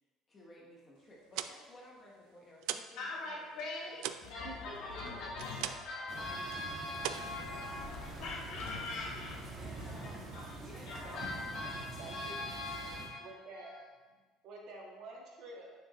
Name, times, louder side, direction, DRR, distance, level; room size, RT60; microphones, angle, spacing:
voice 1, 0.3-4.1 5.2-5.4 7.9-8.2 8.6-8.7 9.1-9.2 9.5-10.3 10.5-11.4, left 1 dB, 20° left, -3 dB, 1.1 m, -56 dB
sound 1, 1.1-3.0 3.3-6.0 6.3-6.6 7.0-8.1, right 11 dB, 75° right, 0.3 m, -41 dB
voice 2, 3.0-9.3 9.7-9.9 10.3-10.4 10.8-13.2 13.5-13.8, left 2 dB, 60° left, -4 dB, 2.3 m, -42 dB
sound 2, 4.2-6.1 7.2-10.0, left 5 dB, 85° left, 1.0 m, -50 dB
voice 3, 4.2-5.7 12.0-12.3 13.2-13.7 14.4-15.7, right 2 dB, 55° right, -1 dB, 1.5 m, -49 dB
sound 3, 6.1-13.1, right 2 dB, 40° right, 1.3 m, -46 dB
9.4 x 6.5 x 3.1 m, 1.3 s
cardioid pair, 175°, 0 cm